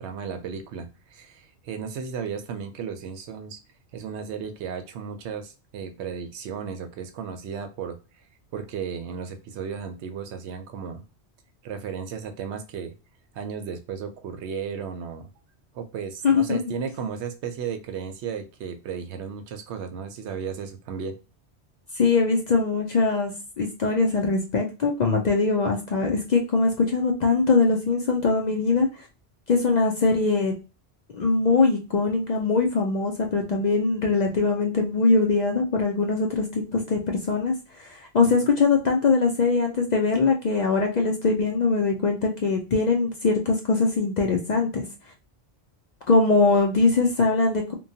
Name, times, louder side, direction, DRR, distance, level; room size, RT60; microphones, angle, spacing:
voice 1, 0.0-3.6 3.9-8.0 8.5-11.0 11.6-12.9 13.3-15.3 15.7-21.2, right 6 dB, 85° right, 8 dB, 0.9 m, -34 dB
voice 2, 16.2-16.6 21.9-28.9 29.5-30.5 31.1-37.5 38.1-44.8 46.1-47.7, left 4 dB, 55° left, 2 dB, 0.5 m, -22 dB
2.9 x 2.1 x 2.6 m, 0.31 s
omnidirectional pair, 1.1 m